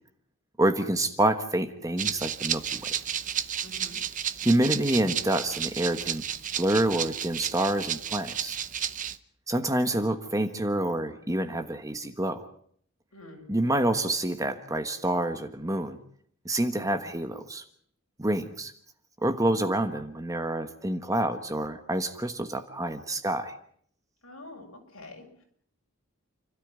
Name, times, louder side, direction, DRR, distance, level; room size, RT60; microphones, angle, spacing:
voice 1, 0.6-3.0 4.4-6.2 6.6-8.6 9.5-12.5 13.5-16.0 16.4-17.6 18.2-18.7 19.2-23.5, right 1 dB, 15° right, 8 dB, 1.3 m, -27 dB
Rattle (instrument), 2.0-9.2, right 9 dB, 35° right, 0.9 m, -32 dB
voice 2, 3.6-4.0 13.1-13.4 24.2-25.4, left 1 dB, 70° left, 1 dB, 7.7 m, -46 dB
29.5 x 13.0 x 9.5 m, 0.64 s
head